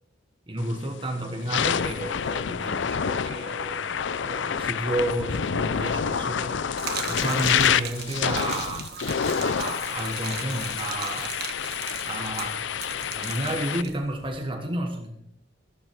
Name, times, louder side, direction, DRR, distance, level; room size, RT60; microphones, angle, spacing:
voice 1, 0.5-6.6 7.1-8.9 9.3-11.3 11.6-11.7 12.0-15.2, right 1 dB, 25° right, 1 dB, 1.4 m, -31 dB
sound 1, 0.6-0.9 1.3-13.8, left 7 dB, 65° left, 0.5 m, -28 dB
Gurgling / Liquid, 6.8-14.4, right 8 dB, 55° right, 1.4 m, -38 dB
14.5 x 12.0 x 4.7 m, 0.80 s
head